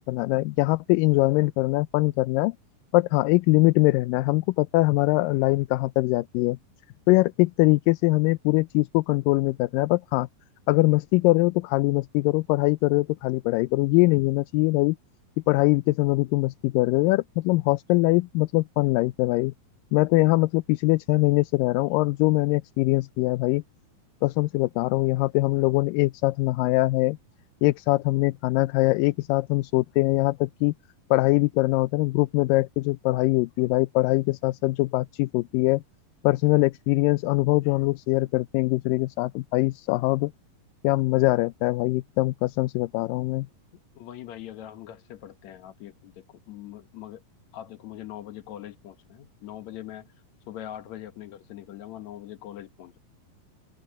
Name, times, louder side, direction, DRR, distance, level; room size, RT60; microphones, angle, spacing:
voice 1, 0.0-2.6 2.9-6.6 7.1-10.3 10.7-15.0 15.5-19.5 19.9-23.6 24.2-27.2 27.6-30.7 31.1-35.8 36.2-40.3 40.8-43.5, left 21 dB, 80° left, 2.2 m, -22 dB
voice 2, 44.0-47.2 47.5-50.1 50.5-53.0, left 12 dB, 65° left, 2.1 m, -42 dB
omnidirectional pair, 4.0 m